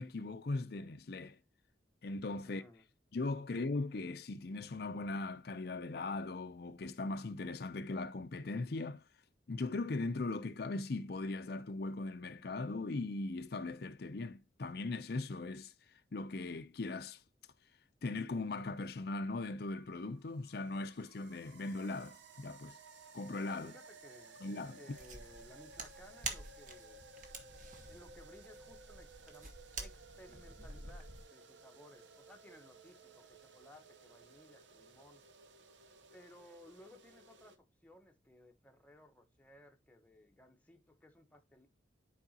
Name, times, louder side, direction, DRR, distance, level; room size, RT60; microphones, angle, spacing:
voice 1, 0.0-1.4 2.0-2.6 3.1-9.1 9.5-17.2 18.0-22.8 23.1-23.7 24.4-24.8, left 3 dB, 55° left, 0.5 m, -39 dB
voice 2, 2.4-2.8 23.6-24.4 24.8-27.1 27.9-35.2 36.1-41.7, left 1 dB, 10° left, 0.9 m, -59 dB
sound 1, 19.6-37.6, right 3 dB, 75° right, 0.9 m, -58 dB
sound 2, 24.9-31.2, right 3 dB, 45° right, 1.4 m, -48 dB
10.5 x 4.8 x 2.8 m
head